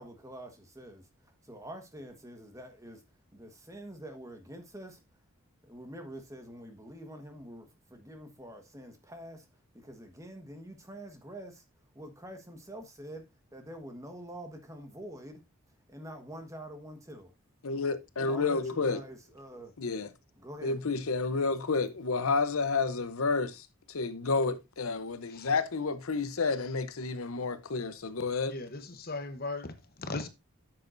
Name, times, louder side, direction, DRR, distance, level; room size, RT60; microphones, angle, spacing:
voice 1, 0.0-3.0 3.3-5.0 5.6-11.6 11.9-13.2 13.5-17.3 18.2-19.7 20.4-20.8, right 1 dB, 15° right, 1.3 m, -46 dB
voice 2, 17.6-19.0 19.8-20.1 20.6-28.6, left 4 dB, 75° left, 0.8 m, -30 dB
voice 3, 28.5-29.7 30.0-30.3, left 3 dB, 45° left, 0.9 m, -37 dB
10.5 x 7.7 x 2.6 m
head